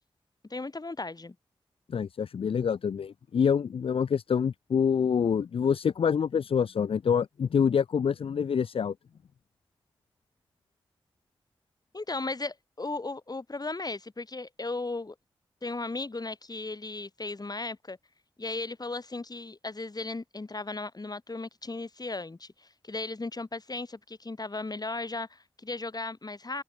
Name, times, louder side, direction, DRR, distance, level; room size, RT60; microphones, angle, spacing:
voice 1, 0.5-1.4 11.9-15.2 15.6-18.0 18.4-26.6, left 3 dB, 40° left, 5.3 m, -36 dB
voice 2, 1.9-8.9, left 7 dB, 70° left, 0.5 m, -26 dB
open air
cardioid pair, 40°, 10 cm